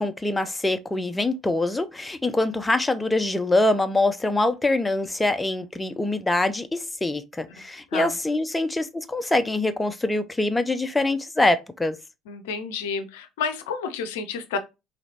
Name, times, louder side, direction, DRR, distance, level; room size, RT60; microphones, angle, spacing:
voice 1, 0.0-12.0, left 2 dB, 10° left, 0.4 m, -24 dB
voice 2, 12.3-14.6, left 5 dB, 70° left, 0.5 m, -30 dB
3.1 x 2.9 x 2.7 m
figure-of-eight pair, 60°, 0 cm